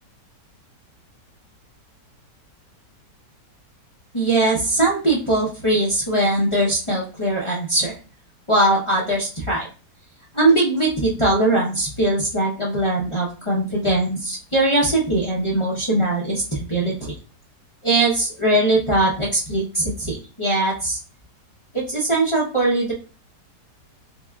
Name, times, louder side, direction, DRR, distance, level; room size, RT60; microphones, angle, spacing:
voice 1, 4.1-7.9 8.5-9.7 10.3-17.1 17.8-21.0 21.7-22.9, right 2 dB, 40° left, -6 dB, 0.4 m, -21 dB
3.5 x 3.4 x 2.3 m, 0.35 s
omnidirectional pair, 1.9 m